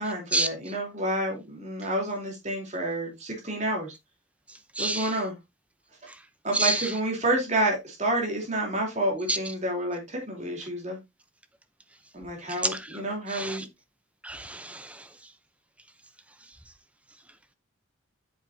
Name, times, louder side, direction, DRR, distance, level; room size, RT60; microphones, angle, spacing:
voice 1, 0.0-3.9 4.8-5.3 6.4-11.0 12.1-13.6, right 1 dB, 35° right, 3.3 m, -29 dB
voice 2, 4.8-5.1 6.5-6.8 9.3-9.4 12.7-12.8 13.3-13.6 14.2-14.8, right 2 dB, 5° right, 0.6 m, -27 dB
8.4 x 7.2 x 2.7 m
head